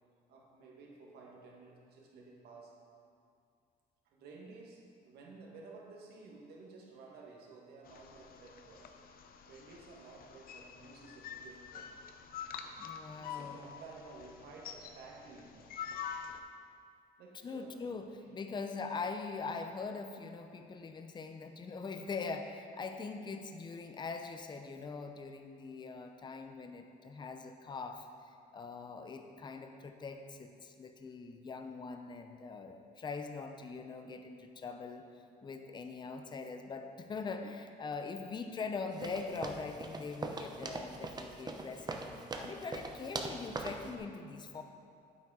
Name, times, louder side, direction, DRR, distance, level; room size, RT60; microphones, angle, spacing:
voice 1, 0.3-2.9 4.1-9.0 9.5-12.0 12.8-12.9 13.2-15.8 17.2-17.9 18.2-18.6 42.5-42.8, right 3 dB, 75° right, -1 dB, 1.8 m, -53 dB
sound 1, 7.9-16.4, left 8 dB, 60° left, 0.7 m, -47 dB
voice 2, 12.8-13.6 17.4-35.1 35.4-44.6, left 4 dB, 25° left, 6 dB, 0.7 m, -42 dB
sound 2, 39.0-43.9, right 3 dB, 25° right, 0.8 m, -41 dB
8.3 x 8.2 x 4.9 m, 2.3 s
cardioid pair, 110°, 17 cm